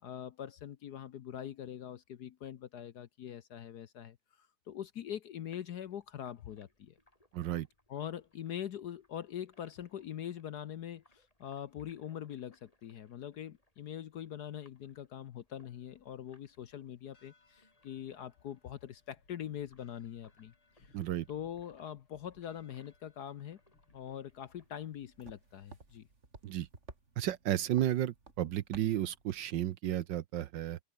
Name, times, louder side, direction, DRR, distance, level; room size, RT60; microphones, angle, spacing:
voice 1, 0.0-7.0 7.9-21.0 21.3-23.6 23.9-26.1, left 10 dB, 60° left, 1.2 m, -43 dB
sound 1, 5.5-24.7, left 1 dB, 15° left, 5.1 m, -71 dB
voice 2, 7.3-7.7 20.9-21.3 26.4-26.7 27.2-30.8, right 12 dB, 65° right, 1.3 m, -33 dB
sound 2, 15.7-25.6, left 3 dB, 80° left, 5.7 m, -68 dB
sound 3, 24.3-29.5, right 3 dB, 35° right, 3.1 m, -56 dB
open air
omnidirectional pair, 2.3 m